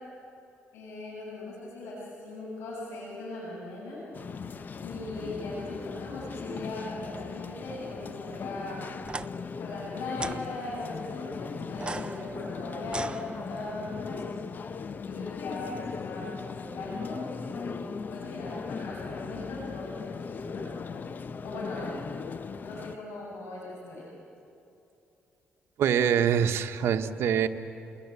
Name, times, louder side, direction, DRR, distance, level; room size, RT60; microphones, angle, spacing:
voice 1, 0.7-4.0 4.8-8.9 9.6-14.3 15.0-17.8 18.1-20.7 21.4-21.9 22.6-24.0, left 2 dB, 80° left, -7 dB, 7.8 m, -39 dB
sound 1, 4.1-23.0, left 5 dB, 45° left, 0.9 m, -38 dB
sound 2, 9.0-9.3 10.1-10.4 11.7-13.8, right 3 dB, 25° right, 0.7 m, -38 dB
voice 2, 25.8-27.5, right 8 dB, 75° right, 6 dB, 1.3 m, -24 dB
28.5 x 21.0 x 9.9 m, 2.8 s
cardioid pair, 85°, 4 cm